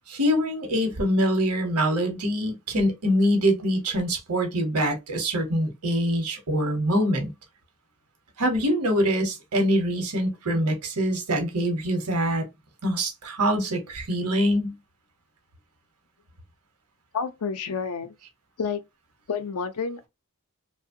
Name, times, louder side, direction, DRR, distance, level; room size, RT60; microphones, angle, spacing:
voice 1, 0.1-7.3 8.4-12.4 12.8-14.8, equal, 75° right, 0.8 m, -24 dB
voice 2, 17.1-18.1 18.6-18.8 19.3-20.1, left 5 dB, 70° left, 0.5 m, -29 dB
2.8 x 2.1 x 2.5 m
head